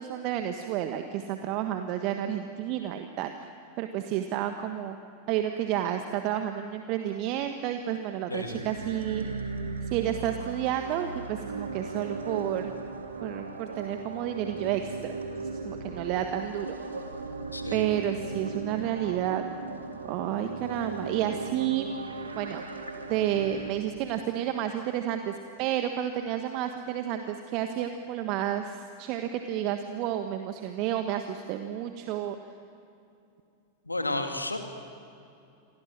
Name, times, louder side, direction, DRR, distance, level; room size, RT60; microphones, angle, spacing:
voice 1, 0.0-3.5 3.8-5.0 5.3-9.3 9.9-12.7 13.2-15.2 15.6-16.7 17.7-19.4 20.1-21.9 22.4-22.6 23.1-32.4, right 11 dB, 40° right, 7 dB, 1.4 m, -30 dB
voice 2, 8.3-8.6 17.5-17.8 33.9-34.6, left 2 dB, 85° left, 5 dB, 2.6 m, -32 dB
sound 1, 8.3-23.7, right 4 dB, 75° right, 2.5 m, -37 dB
28.5 x 24.0 x 7.6 m, 2.6 s
figure-of-eight pair, 90°, 0 cm